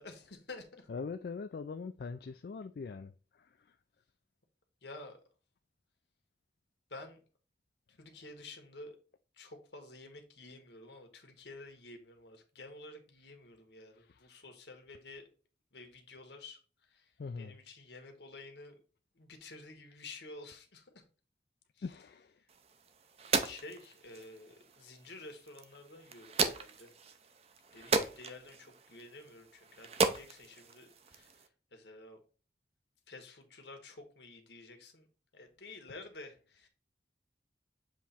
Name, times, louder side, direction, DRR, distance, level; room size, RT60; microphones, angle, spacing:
voice 1, 0.0-0.9 4.8-5.2 6.9-7.2 8.0-9.0 9.3-15.3 15.7-18.8 19.1-21.0 21.7-21.8 22.4-22.5 23.4-26.9 27.7-32.2 33.1-35.1 35.3-36.7, left 2 dB, 80° left, 1.4 m, -51 dB
voice 2, 0.9-3.8 13.9-14.4 17.2-17.5 21.8-22.4, left 4 dB, 60° left, 0.3 m, -43 dB
sound 1, 22.5-31.5, right 4 dB, 35° right, 0.6 m, -37 dB
7.5 x 3.1 x 4.2 m
head